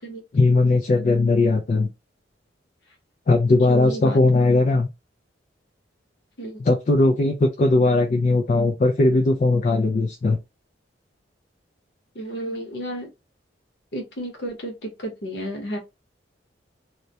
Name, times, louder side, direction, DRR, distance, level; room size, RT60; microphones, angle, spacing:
voice 1, 0.3-1.9 3.3-4.9 6.6-10.4, left 2 dB, 40° left, 0.3 m, -19 dB
voice 2, 3.7-4.2 6.4-6.6 12.1-13.1 13.9-15.8, right 1 dB, 60° left, 0.8 m, -32 dB
2.1 x 2.1 x 2.7 m
head